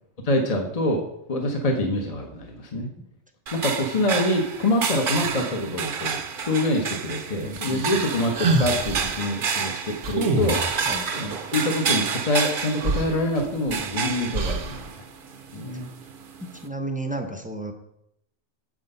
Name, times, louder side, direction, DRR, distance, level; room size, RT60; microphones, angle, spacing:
voice 1, 0.2-1.0 1.3-2.9 3.5-10.9 11.2-14.9 15.5-15.9, left 1 dB, 35° left, 2 dB, 0.9 m, -25 dB
voice 2, 2.7-3.0 7.4-8.3 10.8-11.1 15.7-15.8 16.4-17.7, right 2 dB, 10° right, 4 dB, 0.6 m, -34 dB
sound 1, 3.5-16.7, right 6 dB, 50° right, 0.8 m, -30 dB
sound 2, 7.6-9.2 10.0-11.0 12.5-12.6 12.8-13.8 14.3-14.9, right 2 dB, 85° right, 1.3 m, -26 dB
7.7 x 6.0 x 5.4 m, 0.80 s
omnidirectional pair, 1.2 m